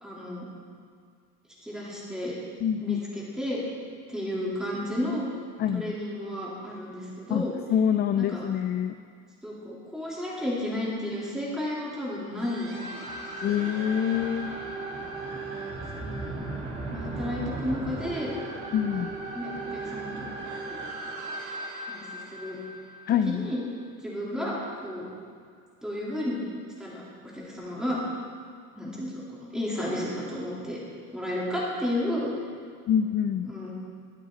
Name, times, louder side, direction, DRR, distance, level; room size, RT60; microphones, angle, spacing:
voice 1, 0.0-0.5 1.6-2.4 2.8-3.6 4.1-5.2 5.7-7.6 8.2-8.5 9.4-12.9 13.2-13.5 15.9-16.4 16.9-18.3 18.9-19.0 19.3-20.3 20.7-20.8 21.9-22.1 22.3-22.6 23.1-23.6 24.0-25.1 25.8-26.5 26.8-28.0 28.8-30.8 31.1-32.3 33.4-33.7, left 1 dB, ahead, -7 dB, 3.5 m, -32 dB
voice 2, 2.6-3.0 5.6-5.9 7.3-7.4 7.7-8.9 13.4-14.6 18.7-19.1 23.1-23.5 32.9-33.5, left 9 dB, 35° left, 8 dB, 0.4 m, -25 dB
sound 1, 12.4-23.6, right 2 dB, 50° right, 3.2 m, -37 dB
23.5 x 7.9 x 4.0 m, 2.1 s
cardioid pair, 155°, 30 cm